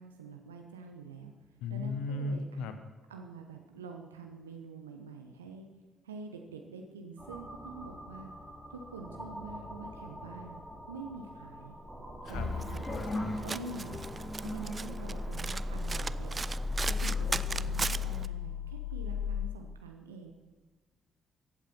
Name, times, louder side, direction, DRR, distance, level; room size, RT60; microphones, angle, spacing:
voice 1, 0.0-1.3 1.7-2.7 3.1-5.7 6.0-8.3 8.7-11.8 12.3-14.0 14.4-16.4 16.8-20.3, right 4 dB, 80° right, 4 dB, 0.8 m, -46 dB
voice 2, 1.6-2.7 12.2-12.5, left 3 dB, 65° left, 9 dB, 1.1 m, -35 dB
sound 1, 7.2-19.4, left 4 dB, 5° right, 3.1 m, -38 dB
sound 2, 12.3-17.9, left 2 dB, 30° left, 1.4 m, -40 dB
Domestic sounds home sounds, 12.3-18.3, right 4 dB, 30° right, 0.4 m, -39 dB
15.5 x 8.4 x 5.9 m, 1.2 s
figure-of-eight pair, 45°, 0 cm